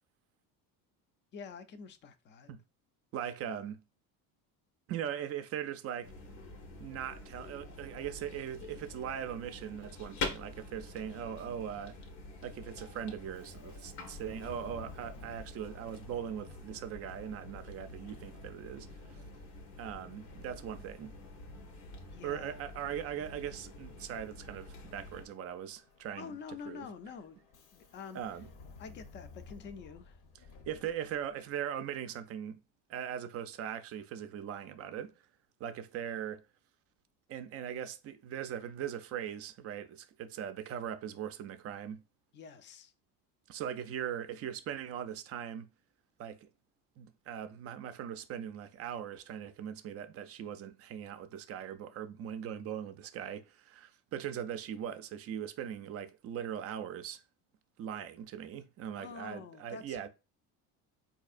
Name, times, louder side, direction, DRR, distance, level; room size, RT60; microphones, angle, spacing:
voice 1, 1.3-2.5 22.1-22.6 26.2-27.4 27.7-28.2 28.8-30.2 42.3-42.9 58.9-60.1, left 6 dB, 30° left, 0.4 m, -47 dB
voice 2, 3.1-3.8 4.9-6.1 6.8-12.0 12.4-19.2 19.8-21.1 22.2-26.3 26.7-26.9 28.1-28.5 30.7-32.6 32.9-35.1 35.6-36.4 37.3-42.0 43.5-45.7 46.2-46.5 47.0-57.2 57.8-60.1, right 9 dB, 40° right, 0.4 m, -40 dB
sound 1, 6.0-25.3, left 3 dB, 85° left, 1.1 m, -46 dB
Subway metro underground, 13.3-31.6, left 4 dB, 55° left, 0.8 m, -57 dB
4.1 x 2.7 x 2.4 m
cardioid pair, 125°, 36 cm